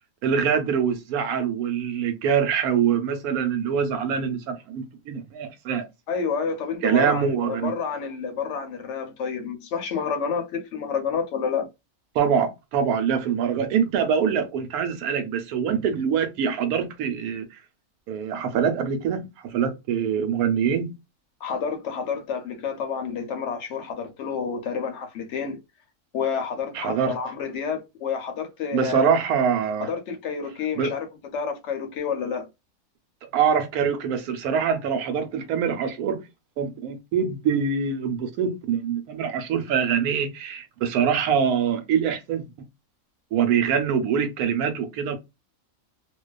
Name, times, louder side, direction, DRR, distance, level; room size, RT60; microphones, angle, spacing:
voice 1, 0.2-5.9 6.8-7.7 12.1-17.5 18.1-20.9 26.7-27.2 28.7-29.9 30.7-30.9 33.3-36.2 36.6-42.4 43.3-45.2, right 7 dB, 85° right, 1.1 m, -24 dB
voice 2, 6.1-11.7 21.4-25.6 26.1-29.1 29.8-31.1 31.3-32.5, left 6 dB, 65° left, 0.8 m, -29 dB
2.5 x 2.2 x 2.2 m
omnidirectional pair, 1.6 m